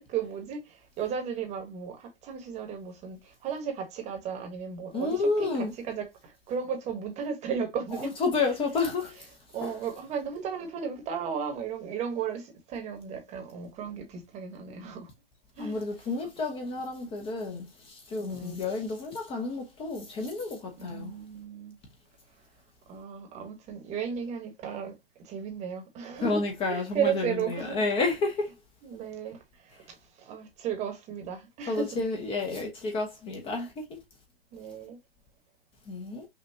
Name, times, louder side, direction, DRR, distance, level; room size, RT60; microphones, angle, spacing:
voice 1, 0.0-8.1 9.5-15.1 15.6-15.8 18.2-18.6 20.8-21.8 22.9-24.9 25.2-26.4 26.7-27.8 28.8-31.9 34.5-35.0, right 7 dB, 25° right, 1.2 m, -35 dB
voice 2, 4.9-5.7 8.0-9.3 9.6-10.0 15.6-21.1 26.2-28.5 31.7-34.0 35.9-36.3, left 3 dB, 20° left, 0.9 m, -30 dB
5.7 x 2.5 x 2.7 m
hypercardioid pair, 120°, 30 cm